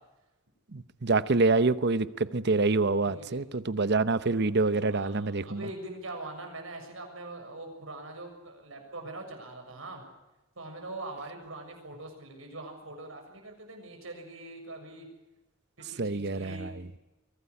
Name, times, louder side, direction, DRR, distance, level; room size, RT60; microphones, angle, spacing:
voice 1, 0.7-2.1 2.3-5.6 16.0-16.7, right 3 dB, 55° right, 0.9 m, -26 dB
voice 2, 3.1-3.5 4.3-4.4 4.9-10.0 10.5-15.1 15.8-16.8, right 2 dB, 75° right, 6.9 m, -43 dB
23.5 x 17.5 x 9.8 m
head